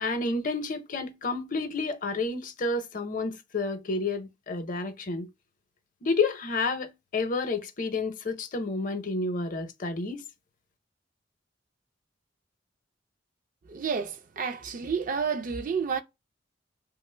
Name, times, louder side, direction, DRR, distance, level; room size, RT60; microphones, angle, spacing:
voice 1, 0.0-5.3 6.0-10.2, left 3 dB, 45° left, 0.6 m, -30 dB
voice 2, 13.7-16.0, right 6 dB, 45° right, 0.4 m, -30 dB
2.9 x 2.0 x 3.2 m
head